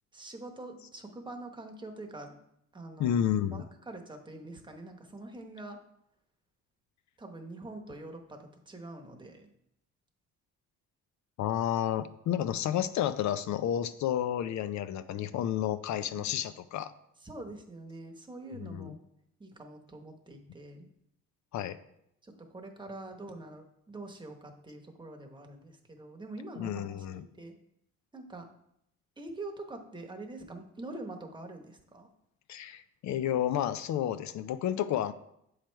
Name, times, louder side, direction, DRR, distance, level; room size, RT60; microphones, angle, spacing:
voice 1, 0.1-2.4 2.7-3.2 3.5-5.8 7.2-9.5 16.1-16.2 17.2-19.0 19.4-20.9 22.2-27.5 28.1-28.5 29.2-32.1, right 2 dB, 15° right, 3 dB, 1.0 m, -45 dB
voice 2, 3.0-3.7 11.4-16.9 18.5-19.0 21.5-21.8 26.6-27.2 32.5-35.1, left 10 dB, 70° left, 12 dB, 0.5 m, -31 dB
7.6 x 3.2 x 4.5 m, 0.76 s
cardioid pair, 90°, 30 cm